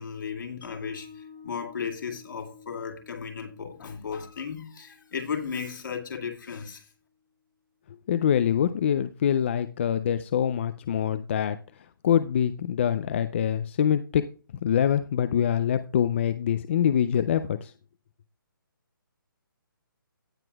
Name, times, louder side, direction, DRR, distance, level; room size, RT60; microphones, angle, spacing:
voice 1, 0.0-6.9, left 6 dB, 60° left, 2.3 m, -35 dB
Mallet percussion, 0.6-6.8, left 6 dB, 80° left, 4.4 m, -51 dB
voice 2, 8.1-14.2 14.6-17.7, left 9 dB, 35° left, 0.4 m, -25 dB
17.0 x 5.9 x 2.3 m
hypercardioid pair, 155°, 12 cm